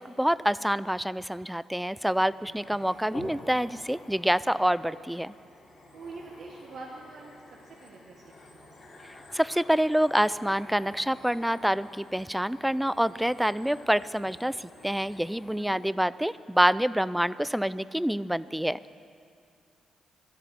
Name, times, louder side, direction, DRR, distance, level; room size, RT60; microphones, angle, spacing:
voice 1, 0.0-5.3 9.3-18.8, equal, 5° right, 18 dB, 0.3 m, -27 dB
sound 1, 1.9-15.9, left 2 dB, 50° left, 2.7 m, -50 dB
voice 2, 2.4-2.9 5.9-7.3 7.8-8.7 15.5-15.8, right 3 dB, 65° right, -2 dB, 1.3 m, -45 dB
12.5 x 7.5 x 9.4 m, 2.4 s
supercardioid pair, 60°, 0 cm